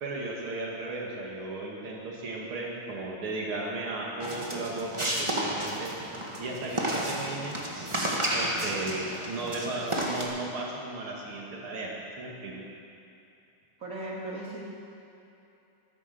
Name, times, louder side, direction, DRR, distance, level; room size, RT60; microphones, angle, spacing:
voice 1, 0.0-5.9 6.4-7.6 8.3-12.6, right 2 dB, 85° right, -2 dB, 2.9 m, -35 dB
sound 1, 4.2-10.2, right 1 dB, 15° right, 1.6 m, -32 dB
voice 2, 13.8-14.6, right 1 dB, 40° right, -4 dB, 3.2 m, -37 dB
15.0 x 13.5 x 6.7 m, 2.8 s
omnidirectional pair, 2.3 m